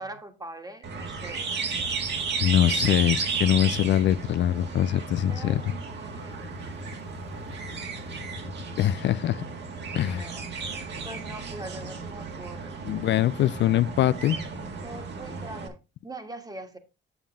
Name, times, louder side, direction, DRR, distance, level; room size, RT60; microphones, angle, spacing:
voice 1, 0.0-1.5 5.3-6.6 10.1-12.8 14.8-15.8 16.0-16.8, right 2 dB, 20° right, 1.6 m, -42 dB
sound 1, 0.8-15.7, right 5 dB, 60° right, 1.8 m, -34 dB
sound 2, 1.8-9.1, left 6 dB, 85° left, 1.0 m, -46 dB
voice 2, 2.4-5.6 8.8-9.5 9.9-10.3 12.8-14.4, left 12 dB, 65° left, 0.4 m, -23 dB
7.4 x 7.1 x 3.6 m
cardioid pair, 90°, 20 cm